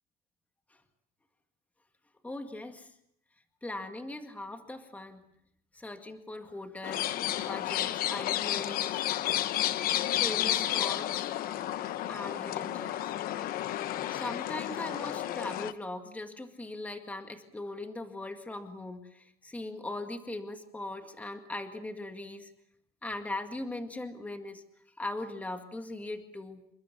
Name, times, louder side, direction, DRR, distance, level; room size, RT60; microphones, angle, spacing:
voice 1, 2.2-2.9 3.6-5.2 5.7-9.0 10.2-11.3 12.1-13.1 14.1-22.5 23.0-24.6 25.0-26.6, left 2 dB, 5° left, 6 dB, 2.0 m, -40 dB
sound 1, 6.8-15.7, left 13 dB, 45° left, 1.1 m, -31 dB
28.0 x 23.0 x 7.1 m, 0.72 s
cardioid pair, 160°, 20 cm